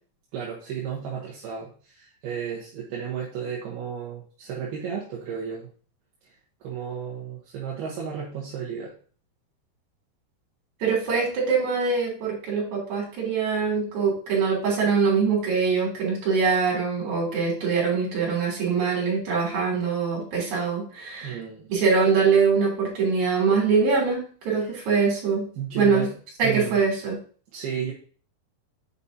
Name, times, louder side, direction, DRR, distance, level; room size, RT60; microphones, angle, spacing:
voice 1, 0.3-5.7 6.2-6.4 6.6-8.9 21.2-21.7 24.6-24.7 25.6-26.1 26.4-26.8 27.5-27.9, right 7 dB, 70° right, -3 dB, 2.6 m, -33 dB
voice 2, 10.8-21.4 21.7-25.4 25.8-26.1 26.4-27.2, right 5 dB, 40° right, -3 dB, 4.1 m, -23 dB
8.5 x 5.3 x 2.8 m, 0.41 s
omnidirectional pair, 5.6 m